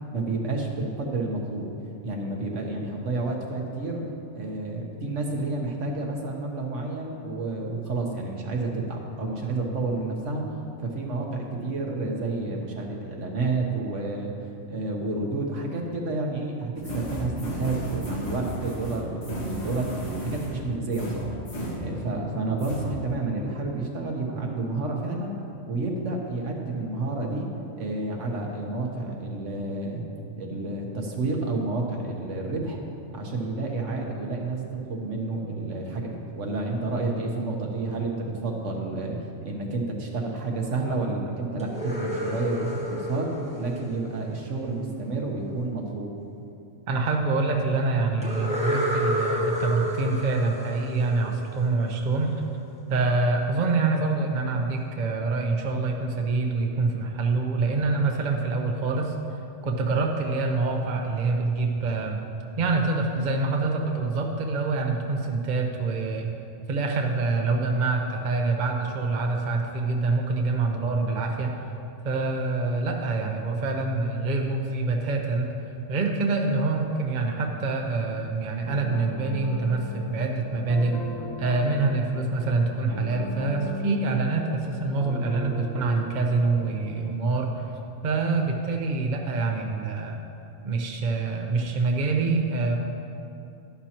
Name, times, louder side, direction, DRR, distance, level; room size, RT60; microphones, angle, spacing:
voice 1, 0.1-1.7 2.0-4.0 4.3-10.4 10.8-14.3 14.7-21.4 21.8-25.3 25.7-27.5 27.7-30.0 30.3-32.8 33.1-34.6 34.9-43.3 43.6-46.1, right 3 dB, 75° right, 0 dB, 1.5 m, -30 dB
sound 1, 16.8-22.3 22.6-22.8, equal, 60° left, 1.8 m, -34 dB
sound 2, 41.6-44.6 48.2-51.9, equal, 5° right, 1.3 m, -30 dB
voice 2, 46.9-52.3 52.9-59.1 59.6-62.2 62.6-66.3 66.7-71.5 72.0-75.5 75.9-80.9 81.4-87.7 88.0-90.2 90.6-92.8, right 3 dB, 40° right, 2 dB, 0.9 m, -26 dB
sound 3, 78.6-87.1, left 2 dB, 30° left, 0.5 m, -38 dB
11.5 x 11.5 x 2.9 m, 2.7 s
omnidirectional pair, 1.3 m